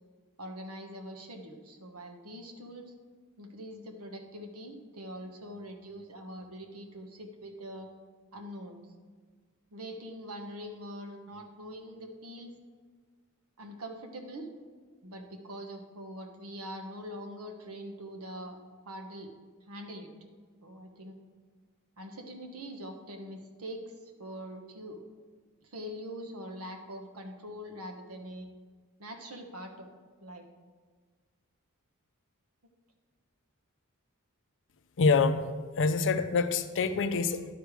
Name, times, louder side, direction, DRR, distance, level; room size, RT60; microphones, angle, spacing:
voice 1, 0.4-2.9 3.4-7.9 8.3-8.8 9.7-12.5 13.6-14.5 15.0-18.6 18.8-19.3 19.7-20.1 20.6-21.2 22.0-23.9 24.2-25.0 25.6-28.5 29.0-29.9 30.2-30.5, equal, 75° right, 4 dB, 1.1 m, -43 dB
voice 2, 35.0-35.4 35.8-37.5, left 4 dB, 60° left, 9 dB, 0.5 m, -26 dB
11.0 x 4.9 x 5.0 m, 1.5 s
head